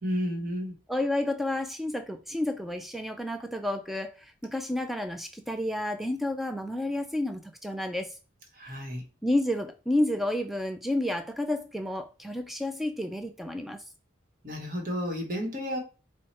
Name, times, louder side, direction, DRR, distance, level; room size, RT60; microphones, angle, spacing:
voice 1, 0.0-0.7 8.5-9.1 14.4-15.8, equal, 45° right, 1.1 m, -32 dB
voice 2, 0.9-8.2 9.2-13.8, left 1 dB, ahead, 0.3 m, -30 dB
4.6 x 2.1 x 4.2 m
head